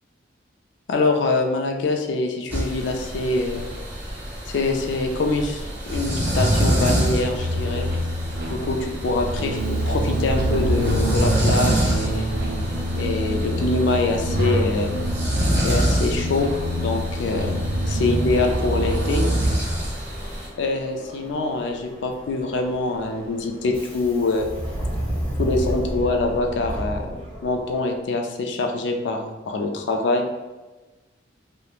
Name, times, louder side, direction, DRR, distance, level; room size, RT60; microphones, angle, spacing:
voice 1, 0.9-3.7 4.5-7.9 8.5-12.2 12.9-14.9 15.6-16.5 16.8-19.3 20.6-24.5 25.4-27.2 27.4-30.2, left 3 dB, 70° left, 3 dB, 0.4 m, -24 dB
sound 1, 2.5-20.5, equal, 10° right, 0.7 m, -27 dB
sound 2, 5.9-19.6, equal, 50° right, 0.4 m, -26 dB
Subway metro underground, 9.5-27.8, equal, 10° left, 1.0 m, -33 dB
3.0 x 2.0 x 2.3 m, 1.2 s
head